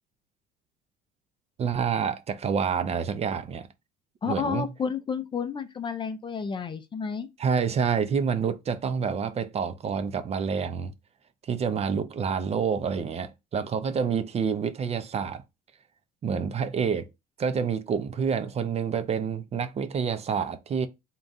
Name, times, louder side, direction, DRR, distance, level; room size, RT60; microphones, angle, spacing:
voice 1, 1.6-3.7 4.3-4.6 7.4-10.9 11.4-15.4 16.2-17.1 17.4-20.9, right 6 dB, 35° right, 0.5 m, -28 dB
voice 2, 4.2-7.3, left 6 dB, 25° left, 0.5 m, -31 dB
3.7 x 2.3 x 3.9 m
supercardioid pair, 105°, 19 cm